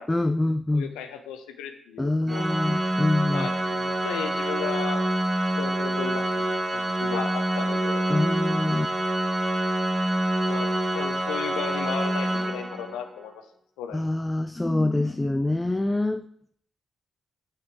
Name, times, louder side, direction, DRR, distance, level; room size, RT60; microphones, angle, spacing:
voice 1, 0.1-0.9 2.0-3.5 8.1-8.9 13.9-16.3, left 2 dB, 20° left, 10 dB, 0.4 m, -25 dB
voice 2, 0.7-2.4 3.3-5.0 5.6-8.1 10.5-13.5 13.8-14.1, left 8 dB, 85° left, 7 dB, 0.7 m, -35 dB
Organ, 2.3-13.1, right 1 dB, 25° right, 1.2 m, -26 dB
6.5 x 5.9 x 4.6 m, 0.66 s
hypercardioid pair, 45°, 0 cm